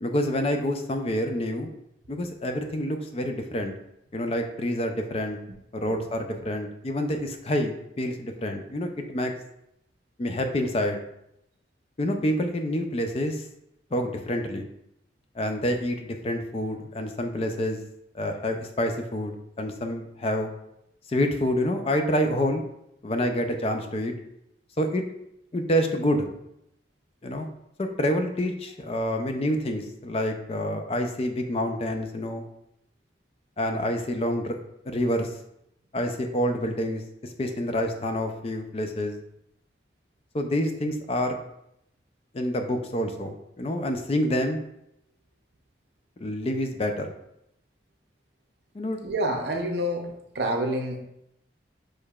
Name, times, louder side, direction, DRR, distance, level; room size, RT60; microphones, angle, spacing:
voice 1, 0.0-1.7 2.1-3.7 4.1-5.4 5.7-9.3 10.2-11.0 12.0-13.4 13.9-14.7 15.4-17.8 18.1-20.5 21.1-22.6 23.0-24.1 24.8-25.0 25.5-26.3 27.2-27.5 27.8-32.5 33.6-34.6 34.9-35.3 35.9-37.0 37.4-39.2 40.3-41.4 42.3-44.6 46.2-47.1 48.7-49.0, equal, 35° left, 5 dB, 0.4 m, -27 dB
voice 2, 49.0-51.0, right 1 dB, 65° right, 3 dB, 0.7 m, -28 dB
6.5 x 3.1 x 2.3 m, 0.80 s
head